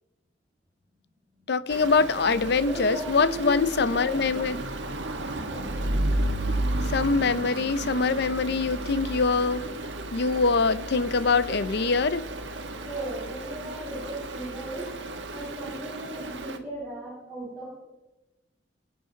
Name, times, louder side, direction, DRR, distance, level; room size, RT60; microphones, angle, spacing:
voice 1, 1.5-4.6 6.9-9.6 10.1-12.3, left 4 dB, 60° left, 0.6 m, -24 dB
Stream, 1.7-16.6, right 1 dB, 70° right, 1.5 m, -33 dB
voice 2, 2.5-4.2 5.5-5.6 12.8-14.9 15.3-17.8, right 2 dB, 10° right, 6.2 m, -37 dB
26.0 x 9.6 x 4.0 m
head